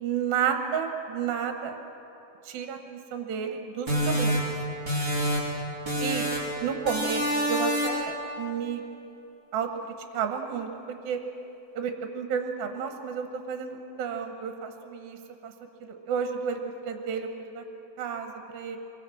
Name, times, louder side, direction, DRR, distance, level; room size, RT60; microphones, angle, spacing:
voice 1, 0.0-1.8 2.4-4.5 6.0-6.3 6.6-8.8 9.5-10.7 11.0-11.2 11.7-15.5 15.8-17.6 18.0-18.8, right 7 dB, 80° right, 5 dB, 3.0 m, -31 dB
sound 1, 3.9-5.6 5.9-6.5 6.9-8.1, equal, 5° right, 4.8 m, -27 dB
25.0 x 23.0 x 6.0 m, 3.0 s
omnidirectional pair, 4.2 m